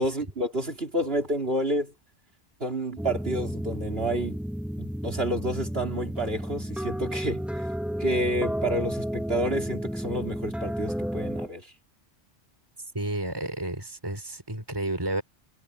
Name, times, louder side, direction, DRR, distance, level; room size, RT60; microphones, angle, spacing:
voice 1, 0.0-1.9 2.6-4.4 4.8-7.7 8.0-11.7, right 1 dB, 60° right, 4.2 m, -29 dB
sound 1, 3.0-11.5, equal, ahead, 1.0 m, -32 dB
voice 2, 12.9-15.2, right 1 dB, 20° right, 3.7 m, -31 dB
omnidirectional pair, 1.2 m